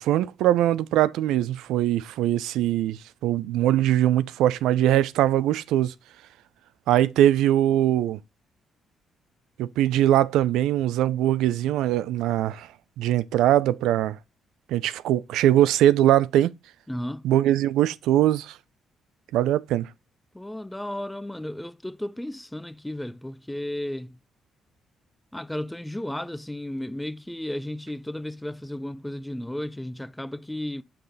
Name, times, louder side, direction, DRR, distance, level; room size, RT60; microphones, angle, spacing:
voice 1, 0.0-5.9 6.9-8.2 9.6-12.7 13.0-14.2 14.7-16.5 17.2-18.6 19.3-19.9, right 12 dB, 90° right, 0.3 m, -21 dB
voice 2, 16.9-17.2 20.3-24.2 25.3-30.8, left 1 dB, 5° left, 0.4 m, -34 dB
5.9 x 5.0 x 4.0 m
cardioid pair, 90°, 0 cm